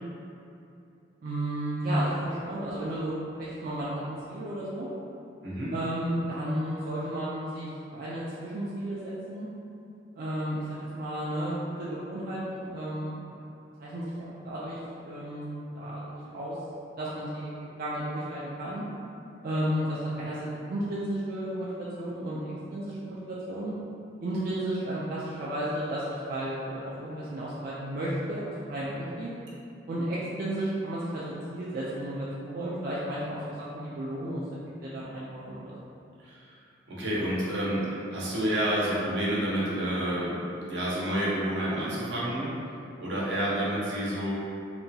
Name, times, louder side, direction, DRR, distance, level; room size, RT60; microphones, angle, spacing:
voice 1, 1.2-3.1 3.4-4.9 5.7-9.5 10.2-13.1 13.8-16.6 17.0-18.8 19.4-23.7 24.2-28.4 28.7-29.3 29.9-34.4 34.8-35.9, right 1 dB, 50° right, -8 dB, 0.3 m, -33 dB
voice 2, 5.4-5.7 36.2-36.6 36.9-42.5 43.0-44.3, right 1 dB, 70° right, -7 dB, 0.7 m, -29 dB
2.8 x 2.2 x 2.6 m, 2.7 s
head